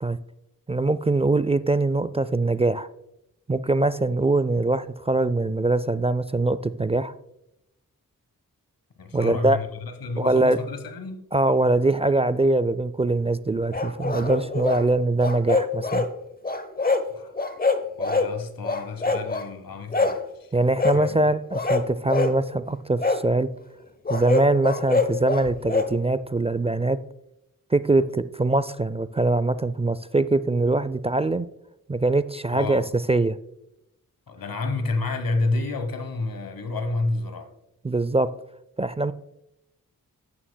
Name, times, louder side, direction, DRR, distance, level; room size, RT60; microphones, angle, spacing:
voice 1, 0.7-2.9 3.5-7.1 9.1-9.6 10.2-10.6 11.3-16.1 20.5-23.5 24.1-27.0 27.7-31.5 31.9-32.8 33.1-33.4 37.8-38.3 38.8-39.1, right 2 dB, 20° right, 0.3 m, -22 dB
voice 2, 9.0-11.2 17.1-17.3 18.0-20.5 20.9-21.3 32.5-32.9 34.3-37.5, left 3 dB, 85° left, 1.1 m, -30 dB
sound 1, 13.7-14.8 15.2-16.1 16.4-17.1 17.4-18.3 18.6-19.5 19.9-20.2 20.8-21.0 21.5-22.4 23.0-23.2 24.1-25.9, left 3 dB, 25° left, 0.8 m, -24 dB
11.0 x 8.9 x 2.2 m
cardioid pair, 50°, 34 cm